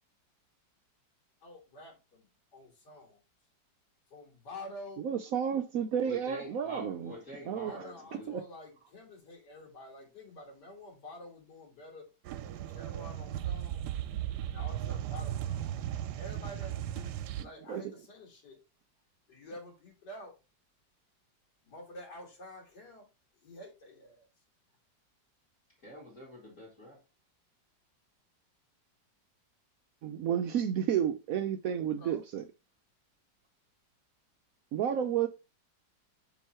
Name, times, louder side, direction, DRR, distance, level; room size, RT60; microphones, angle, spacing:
voice 1, 1.4-3.2 4.1-5.0 7.6-12.0 12.5-13.8 14.4-15.7 16.2-17.1 17.4-18.6 19.3-20.3 21.6-23.1 23.4-24.3 32.0-32.2, left 1 dB, 60° left, 2.7 m, -48 dB
voice 2, 5.0-7.1 7.5-7.9 8.1-8.4 17.4-17.8 30.0-32.4 34.7-35.3, right 9 dB, 90° right, 0.7 m, -31 dB
voice 3, 6.0-8.4 25.8-27.0, equal, 40° left, 2.4 m, -46 dB
sound 1, 12.2-17.4, right 11 dB, 70° right, 1.0 m, -36 dB
7.1 x 3.1 x 4.3 m
omnidirectional pair, 2.0 m